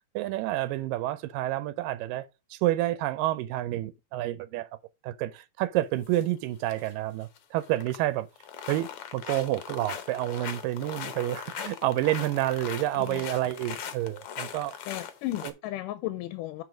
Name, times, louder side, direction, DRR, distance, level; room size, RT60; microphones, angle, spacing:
voice 1, 0.2-4.7 5.0-8.3 8.7-14.7 15.4-15.5, right 15 dB, 90° right, 2.3 m, -29 dB
sound 1, 6.1-6.2 6.6-6.9 7.2-8.1 8.4-15.5, left 8 dB, 70° left, 1.3 m, -40 dB
voice 2, 14.9-16.6, left 15 dB, 90° left, 2.2 m, -34 dB
7.1 x 4.8 x 4.9 m
omnidirectional pair, 3.8 m